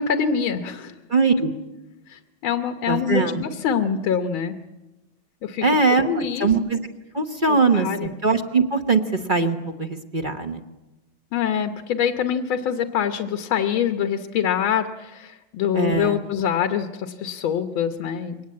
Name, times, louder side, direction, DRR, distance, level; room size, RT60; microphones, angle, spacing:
voice 1, 0.0-0.9 2.1-4.6 5.4-5.6 6.0-6.5 7.5-8.1 11.3-18.4, left 8 dB, 75° left, 7 dB, 1.8 m, -25 dB
voice 2, 1.1-1.5 2.9-3.4 5.6-6.8 7.1-10.6 15.7-16.2, right 4 dB, 30° right, 5 dB, 1.1 m, -21 dB
23.5 x 19.0 x 8.6 m, 1.0 s
omnidirectional pair, 2.3 m